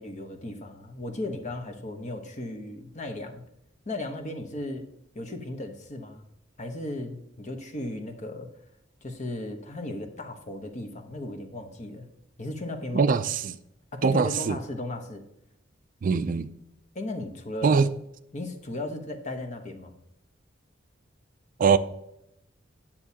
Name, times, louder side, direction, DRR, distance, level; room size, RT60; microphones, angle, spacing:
voice 1, 0.0-3.4 3.9-4.9 5.1-6.2 6.6-8.5 9.0-12.1 12.4-13.1 13.9-15.2 16.9-17.9 18.3-20.0, left 1 dB, 40° left, 1.0 m, -36 dB
voice 2, 12.9-13.5 14.0-14.6 16.0-16.5 17.6-17.9 21.6-21.8, right 5 dB, 45° right, 0.3 m, -22 dB
10.0 x 7.2 x 2.8 m
head